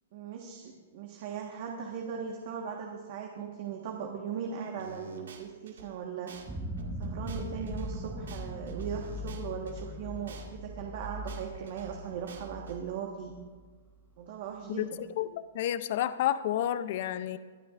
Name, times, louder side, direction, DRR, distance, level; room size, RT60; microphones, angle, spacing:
voice 1, 0.1-6.3 7.0-13.4 14.2-15.0, right 7 dB, 50° right, 1 dB, 1.4 m, -38 dB
sound 1, 4.8-5.9 6.3-6.5 6.8-9.9 10.3-10.5 10.8-12.8, right 4 dB, 85° right, 2.0 m, -49 dB
sound 2, 6.5-13.6, equal, 5° right, 1.0 m, -40 dB
voice 2, 15.2-17.4, left 11 dB, 50° left, 14 dB, 0.5 m, -30 dB
23.5 x 10.5 x 2.5 m, 1.5 s
hypercardioid pair, 150°, 0 cm